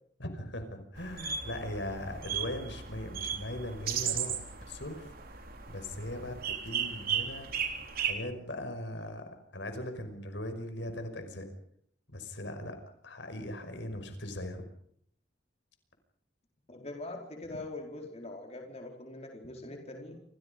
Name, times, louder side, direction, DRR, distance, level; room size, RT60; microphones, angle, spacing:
voice 1, 0.2-5.1 5.7-7.5 8.0-11.5 12.1-12.8 13.0-14.6, left 1 dB, 70° left, 7 dB, 5.6 m, -39 dB
sound 1, 1.0-8.1, right 7 dB, 50° right, 3.6 m, -36 dB
voice 2, 16.7-20.2, left 2 dB, 35° left, 2 dB, 4.7 m, -43 dB
29.0 x 27.0 x 5.4 m, 0.66 s
head